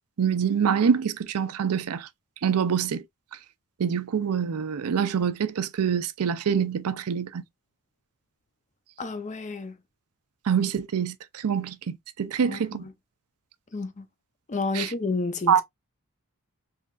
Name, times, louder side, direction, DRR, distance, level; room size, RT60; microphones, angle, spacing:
voice 1, 0.2-2.1 2.4-3.0 3.8-7.4 10.5-12.8 14.7-14.9 15.5-15.6, right 7 dB, 80° right, 0.5 m, -25 dB
voice 2, 9.0-9.8 12.4-12.9 13.7-14.1 14.5-15.6, left 3 dB, 35° left, 0.6 m, -31 dB
3.9 x 3.1 x 2.4 m
head